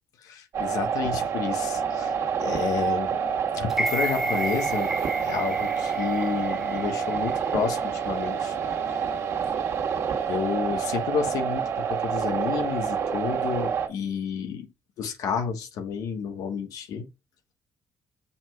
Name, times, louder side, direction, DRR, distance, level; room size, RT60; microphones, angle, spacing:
voice 1, 0.2-2.1 2.4-3.2 3.5-4.9 5.2-8.6 10.3-14.7 15.0-17.1, left 6 dB, 85° left, 1.4 m, -30 dB
sound 1, 0.5-13.9, right 7 dB, 60° right, 1.6 m, -28 dB
sound 2, 3.7-7.8 8.2-8.3, right 1 dB, 5° right, 0.4 m, -33 dB
7.1 x 3.2 x 4.8 m
cardioid pair, 130°, 6 cm